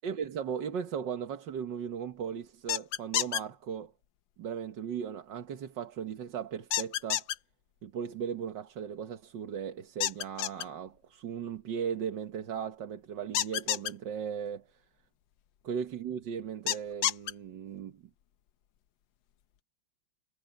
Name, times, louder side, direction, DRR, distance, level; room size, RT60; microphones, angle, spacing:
voice 1, 0.0-3.9 4.4-7.3 7.8-14.8 15.6-18.0, right 7 dB, 70° right, 1.9 m, -37 dB
sound 1, 2.7-3.4 6.7-7.4 10.0-10.6 13.3-13.9 16.7-17.3, left 11 dB, 80° left, 1.5 m, -29 dB
omnidirectional pair, 2.1 m